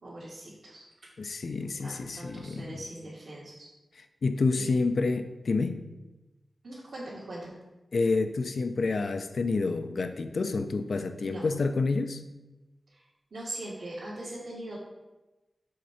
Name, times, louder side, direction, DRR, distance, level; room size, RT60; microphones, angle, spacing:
voice 1, 0.0-0.8 1.6-3.7 4.5-4.7 6.6-7.6 11.2-11.4 13.3-14.8, right 1 dB, 70° right, -8 dB, 1.7 m, -41 dB
voice 2, 1.2-2.8 4.0-5.8 7.9-12.2, left 3 dB, 70° left, 8 dB, 0.4 m, -29 dB
6.5 x 3.3 x 5.6 m, 1.1 s
cardioid pair, 60°, 0 cm